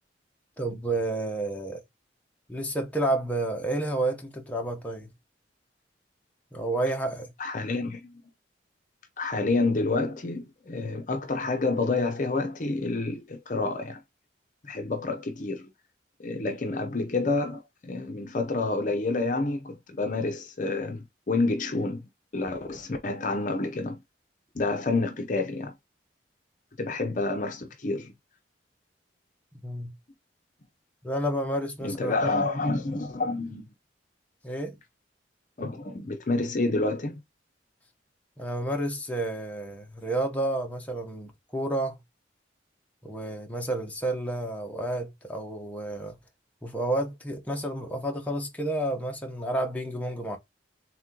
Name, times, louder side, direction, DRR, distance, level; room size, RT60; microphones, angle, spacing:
voice 1, 0.6-1.8 2.5-5.1 6.5-7.3 29.6-29.9 31.0-32.1 34.4-34.8 38.4-42.0 43.0-46.2 46.6-50.4, right 1 dB, 10° left, 0.9 m, -30 dB
voice 2, 7.4-8.2 9.2-14.0 14.6-15.7 16.2-22.0 22.3-24.0 24.5-25.7 26.8-28.1 31.8-33.7 35.6-37.2, left 3 dB, 45° left, 0.6 m, -28 dB
3.7 x 3.0 x 3.7 m
head